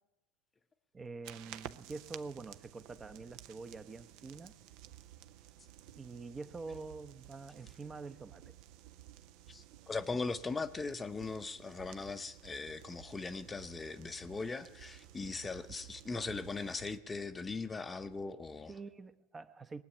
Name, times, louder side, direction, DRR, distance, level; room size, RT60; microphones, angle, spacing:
voice 1, 0.9-4.6 6.0-8.5 18.7-19.8, right 4 dB, 20° right, 0.8 m, -46 dB
sound 1, 1.2-17.0, right 12 dB, 55° right, 0.7 m, -54 dB
voice 2, 9.5-18.7, left 4 dB, 20° left, 0.7 m, -39 dB
19.5 x 7.7 x 9.7 m
hypercardioid pair, 90°, 0 cm